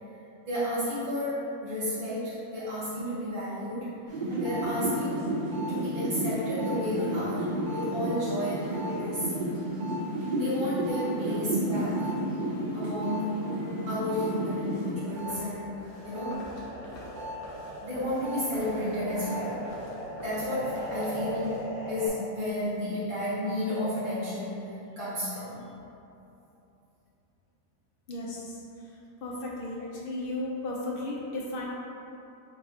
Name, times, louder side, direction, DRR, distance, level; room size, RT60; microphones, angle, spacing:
voice 1, 0.5-3.9 4.4-5.3 5.7-9.3 10.3-12.0 12.7-13.4 13.9-16.5 17.8-19.6 20.2-21.6 21.9-25.6, left 1 dB, 45° right, -12 dB, 0.8 m, -32 dB
sound 1, 4.1-15.4 15.7-22.1, right 1 dB, 90° right, 0.4 m, -33 dB
sound 2, 15.2-21.6, equal, 55° left, 1.0 m, -47 dB
voice 2, 28.1-28.6 29.2-31.7, left 2 dB, 75° left, -4 dB, 0.5 m, -34 dB
3.9 x 2.4 x 4.2 m, 2.9 s
omnidirectional pair, 1.6 m